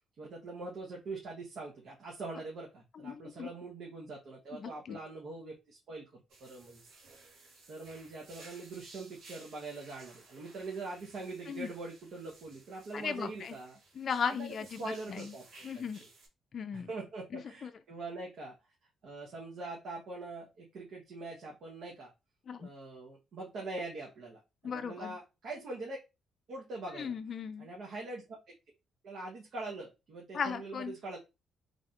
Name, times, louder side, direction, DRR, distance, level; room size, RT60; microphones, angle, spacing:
voice 1, 0.2-6.9 7.3-13.8 14.3-14.5 14.8-15.5 15.7-16.1 16.7-18.5 19.0-22.1 22.6-26.0 26.5-27.1 27.6-28.5 29.0-31.2, right 3 dB, 65° right, 1.1 m, -43 dB
voice 2, 3.0-3.5 4.5-5.0 11.5-11.7 12.9-13.6 13.9-15.3 15.6-16.0 16.5-16.9 17.3-17.7 22.5-22.7 24.6-25.2 26.9-27.7 30.3-30.9, left 6 dB, 50° left, 0.4 m, -37 dB
sound 1, 6.3-16.3, right 3 dB, 85° right, 1.8 m, -57 dB
4.1 x 3.3 x 2.5 m
cardioid pair, 90°, 0 cm